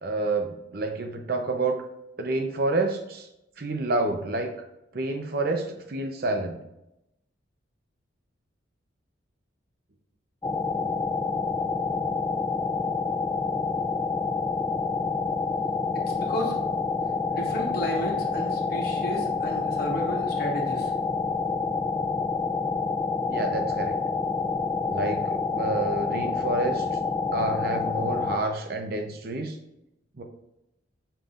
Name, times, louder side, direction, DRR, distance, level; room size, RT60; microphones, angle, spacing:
voice 1, 0.0-1.8 2.2-3.3 3.6-4.5 4.9-6.6 23.3-24.0 24.9-26.9 27.3-29.6 30.2-30.3, right 2 dB, 55° right, 5 dB, 0.7 m, -28 dB
sound 1, 10.4-28.4, left 4 dB, 15° left, 0.3 m, -28 dB
voice 2, 16.1-16.6 17.3-20.9, equal, 55° left, -2 dB, 1.6 m, -32 dB
6.7 x 5.7 x 2.5 m, 0.88 s
head